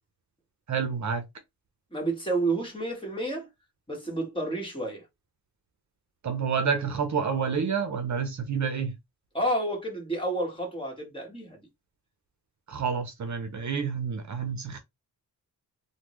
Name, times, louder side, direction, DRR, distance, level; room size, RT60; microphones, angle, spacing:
voice 1, 0.7-1.2 6.2-8.9 12.7-14.8, right 6 dB, 50° right, 0.6 m, -29 dB
voice 2, 1.9-3.5 3.9-5.0 9.3-11.6, right 2 dB, 15° left, 1.4 m, -30 dB
3.4 x 2.2 x 3.0 m
wide cardioid pair, 115°, 37 cm